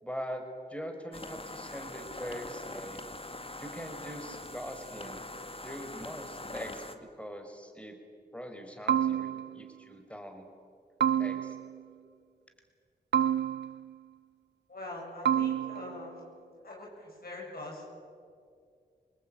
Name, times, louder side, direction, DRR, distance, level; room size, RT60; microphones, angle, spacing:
voice 1, 0.0-3.0 3.6-5.2 5.6-8.0 8.3-10.5 11.2-11.6, equal, 5° left, 5 dB, 4.9 m, -42 dB
sound 1, 1.1-7.0, left 2 dB, 30° left, 2.1 m, -43 dB
sound 2, 8.9-9.7 11.0-11.8 13.1-13.9 15.3-16.1, right 9 dB, 70° right, 0.6 m, -29 dB
voice 2, 14.7-16.1 16.6-17.9, left 2 dB, 55° left, -2 dB, 8.0 m, -43 dB
27.0 x 19.5 x 9.0 m, 2.2 s
cardioid pair, 45°, 18 cm